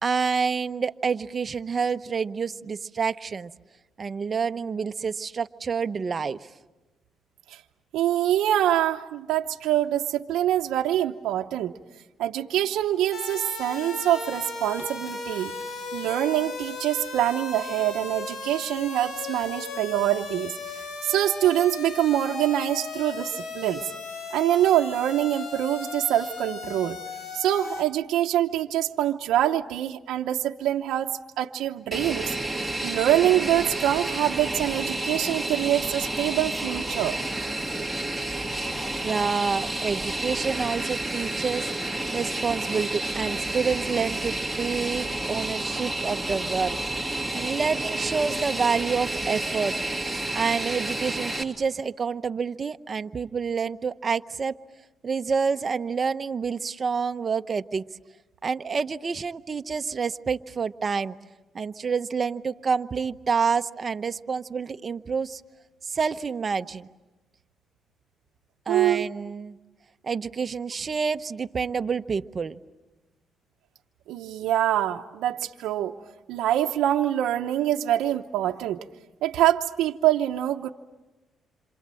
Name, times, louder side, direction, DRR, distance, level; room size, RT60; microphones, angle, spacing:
voice 1, 0.0-3.5 4.0-6.4 39.0-41.7 42.1-46.8 47.3-49.7 50.3-54.5 55.0-57.8 58.4-61.2 61.5-65.4 65.8-66.9 68.7-69.6 70.0-72.5, right 5 dB, 40° right, 10 dB, 0.9 m, -28 dB
voice 2, 7.9-11.7 12.2-15.5 15.9-23.8 24.3-27.0 27.3-31.1 31.4-32.3 32.8-37.2 68.7-69.1 74.1-75.9 76.3-78.8 79.2-80.7, right 12 dB, 85° right, 3 dB, 0.9 m, -25 dB
sound 1, 13.1-27.8, left 4 dB, 60° left, 4.4 m, -36 dB
Fixed-wing aircraft airplane, 31.9-51.4, right 2 dB, ahead, 2.7 m, -30 dB
28.0 x 27.0 x 7.7 m, 1.1 s
cardioid pair, 90°, 0 cm